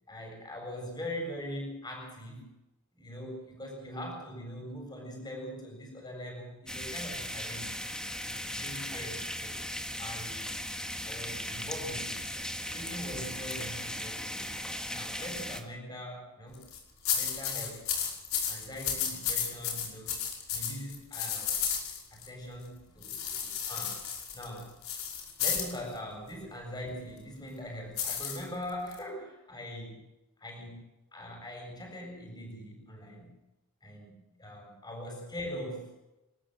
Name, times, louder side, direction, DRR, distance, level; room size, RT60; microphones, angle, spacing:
voice 1, 0.1-2.5 3.0-7.8 8.2-9.6 10.0-10.6 11.0-12.2 12.7-14.6 14.9-16.6 17.1-17.9 18.5-20.2 20.5-21.6 22.1-24.0 24.3-24.7 25.4-30.0 30.4-30.8 31.1-33.4 33.8-35.9, equal, 20° left, 1 dB, 7.5 m, -42 dB
sound 1, 6.7-15.6, left 1 dB, 5° left, 1.8 m, -37 dB
sound 2, 16.5-16.8 17.0-22.3 23.0-25.8 28.0-29.0, left 7 dB, 70° left, 5.7 m, -33 dB
28.0 x 13.5 x 7.9 m, 0.96 s
head